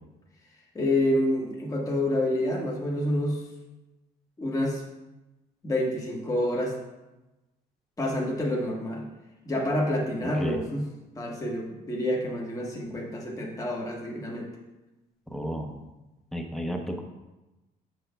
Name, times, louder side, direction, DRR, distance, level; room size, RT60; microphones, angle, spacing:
voice 1, 0.7-3.4 4.4-4.8 5.6-6.7 8.0-9.0 9.4-10.9 11.2-14.5, left 1 dB, 20° left, -3 dB, 1.3 m, -28 dB
voice 2, 15.3-15.8 16.3-17.0, equal, ahead, 3 dB, 0.8 m, -32 dB
7.6 x 6.2 x 2.3 m, 1.0 s
cardioid pair, 110°, 17 cm